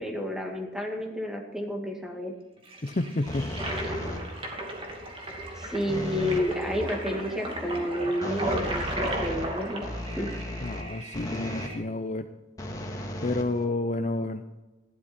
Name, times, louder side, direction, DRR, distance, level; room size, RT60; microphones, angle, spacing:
voice 1, 0.0-2.4 5.4-9.8 10.2-10.3, equal, 5° right, 1 dB, 2.1 m, -31 dB
Toilet flush, 2.7-11.8, right 1 dB, 30° right, 2.5 m, -35 dB
voice 2, 2.8-3.5 10.6-12.3 13.2-14.4, left 2 dB, 40° left, 8 dB, 0.6 m, -30 dB
sound 1, 3.3-4.5 5.9-6.5 8.2-11.8 12.6-14.1, left 1 dB, 20° left, 1.8 m, -36 dB
14.5 x 11.5 x 4.4 m, 1.1 s
head